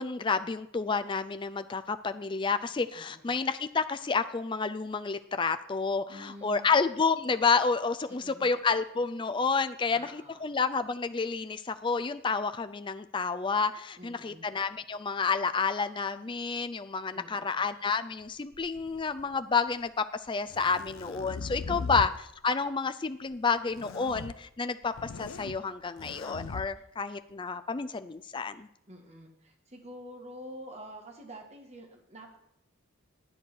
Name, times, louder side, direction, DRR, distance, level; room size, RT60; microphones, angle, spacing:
voice 1, 0.0-19.9 20.3-22.1 22.4-28.7, left 5 dB, 25° left, 10 dB, 0.4 m, -30 dB
voice 2, 3.0-3.4 6.1-6.7 8.1-8.5 9.9-10.5 14.0-14.5 17.1-17.7 21.7-22.0 28.9-32.4, equal, 30° right, 2 dB, 1.9 m, -48 dB
sound 1, 18.5-19.3 20.3-22.2 23.7-24.3 24.8-25.6 26.0-26.7, left 4 dB, 75° left, 0.5 m, -39 dB
11.0 x 8.5 x 6.3 m, 0.76 s
head